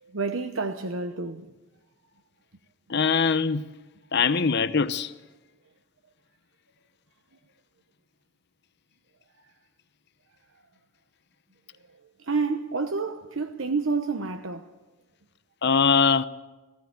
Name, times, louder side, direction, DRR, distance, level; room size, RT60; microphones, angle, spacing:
voice 1, 0.0-1.5 12.2-14.7, right 4 dB, 65° right, 1.0 m, -29 dB
voice 2, 2.9-3.7 4.1-5.1 15.6-16.2, left 5 dB, 50° left, 0.8 m, -22 dB
19.0 x 16.5 x 9.3 m
head